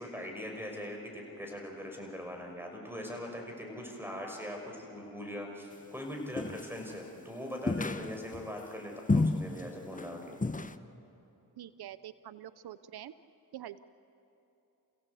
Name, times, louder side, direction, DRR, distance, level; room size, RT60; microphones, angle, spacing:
voice 1, 0.0-10.4, left 1 dB, 5° right, 1 dB, 6.0 m, -41 dB
sound 1, 6.4-6.9 7.7-8.5 9.1-9.6 9.9-10.1 10.4-10.8, left 3 dB, 20° left, 0.9 m, -30 dB
voice 2, 11.6-13.1 13.5-13.8, right 11 dB, 85° right, 15 dB, 0.6 m, -45 dB
28.5 x 16.0 x 8.3 m, 3.0 s
cardioid pair, 45°, 37 cm